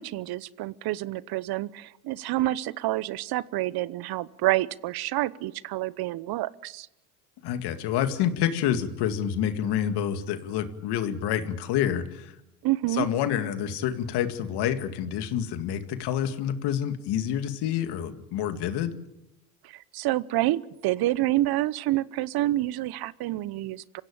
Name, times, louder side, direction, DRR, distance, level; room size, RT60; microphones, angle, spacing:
voice 1, 0.0-6.9 12.6-13.1 19.6-24.0, right 16 dB, 60° right, 20 dB, 1.0 m, -28 dB
voice 2, 7.4-12.4 12.9-18.9, left 10 dB, 65° left, 10 dB, 2.3 m, -28 dB
26.0 x 16.0 x 8.7 m, 0.89 s
hypercardioid pair, 75°, 43 cm